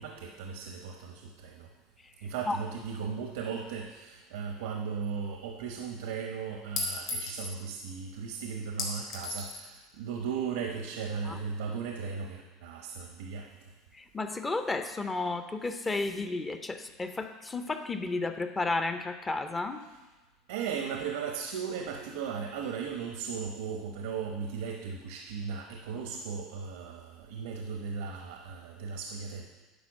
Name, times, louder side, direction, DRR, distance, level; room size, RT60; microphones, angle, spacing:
voice 1, 0.0-1.7 2.2-13.5 20.5-29.4, right 6 dB, 85° right, 2 dB, 0.8 m, -37 dB
voice 2, 2.2-2.6 11.2-11.4 13.9-19.8, left 3 dB, 15° left, 9 dB, 0.6 m, -33 dB
Chink clink, 5.0-5.1 6.8-7.6 8.8-9.7, left 3 dB, 55° left, 3.2 m, -35 dB
10.0 x 4.3 x 6.2 m, 1.2 s
supercardioid pair, 120°, 0 cm